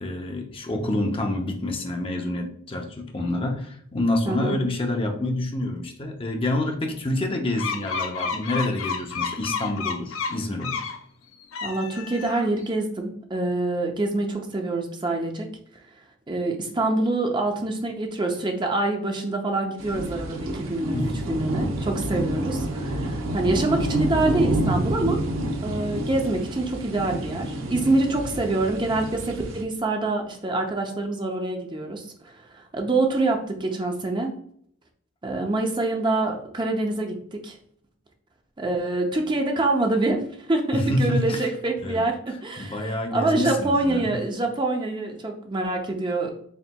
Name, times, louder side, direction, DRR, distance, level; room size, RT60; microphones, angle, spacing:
voice 1, 0.0-10.8 20.9-21.3 40.7-41.5 41.8-42.1 42.6-44.1, left 1 dB, 25° left, 3 dB, 0.5 m, -27 dB
voice 2, 4.2-4.6 11.6-15.5 16.3-25.2 25.6-34.3 35.2-37.6 38.6-46.3, right 2 dB, 20° right, 2 dB, 0.5 m, -26 dB
sound 1, 7.6-11.0 11.4-12.6, left 5 dB, 80° left, 0.5 m, -31 dB
sound 2, 19.8-29.6, right 1 dB, 80° right, 0.7 m, -28 dB
4.3 x 3.8 x 2.2 m, 0.64 s
head